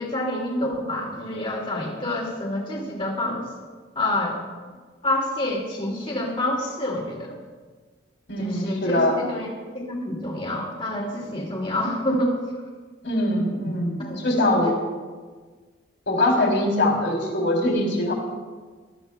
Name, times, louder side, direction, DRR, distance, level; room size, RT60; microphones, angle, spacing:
voice 1, 0.0-3.5 4.0-4.4 5.0-7.4 8.4-9.5 9.7-12.4 14.0-14.2 14.5-14.7, left 1 dB, 25° left, -1 dB, 2.3 m, -27 dB
voice 2, 8.3-9.2 13.0-14.7 16.1-18.1, left 1 dB, 70° left, -1 dB, 3.1 m, -22 dB
20.5 x 13.0 x 2.2 m, 1.4 s
head